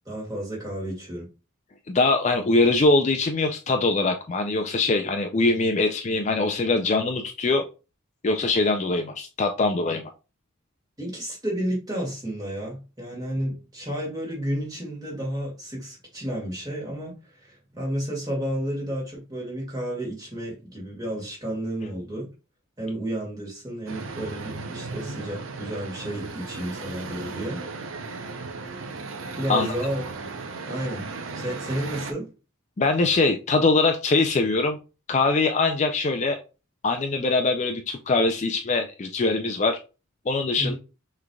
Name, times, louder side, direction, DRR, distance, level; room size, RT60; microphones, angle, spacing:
voice 1, 0.1-1.3 11.0-22.3 22.8-27.6 29.4-30.1 30.7-31.1 31.3-32.3 40.6-40.7, right 1 dB, 20° right, 2.2 m, -31 dB
voice 2, 1.9-7.6 8.2-10.0 29.5-29.7 32.8-34.8 35.1-36.4 36.8-39.8 40.3-40.7, left 3 dB, 35° left, 0.4 m, -22 dB
sound 1, 23.9-32.1, right 3 dB, 70° right, 0.6 m, -36 dB
6.0 x 3.2 x 2.3 m
head